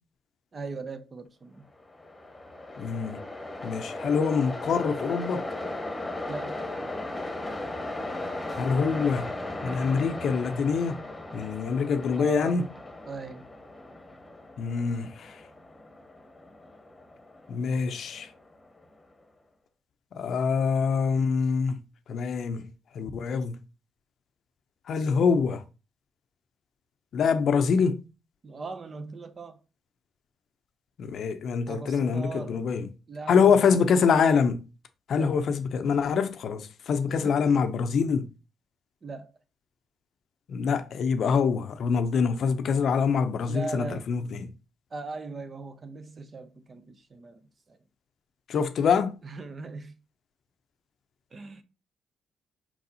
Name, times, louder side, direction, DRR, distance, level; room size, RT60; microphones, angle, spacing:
voice 1, 0.5-1.7 6.3-6.6 12.1-12.6 13.1-13.4 28.4-29.6 31.7-32.6 33.1-33.9 35.1-35.4 37.1-37.7 39.0-39.3 43.5-44.1 44.9-47.8 49.2-50.0 51.3-51.6, right 3 dB, 40° right, 0.7 m, -39 dB
Train, 1.7-18.9, left 2 dB, 15° left, 1.1 m, -37 dB
voice 2, 2.8-3.2 3.6-5.5 8.6-9.3 9.6-11.0 11.3-12.7 14.6-15.4 17.5-18.3 20.1-21.8 22.1-22.7 22.9-23.6 24.9-25.6 27.1-28.0 31.0-32.9 33.3-34.6 35.1-38.3 40.5-44.5 48.5-49.2, left 6 dB, 65° left, 0.6 m, -25 dB
4.5 x 4.1 x 2.7 m
cardioid pair, 85°, 0 cm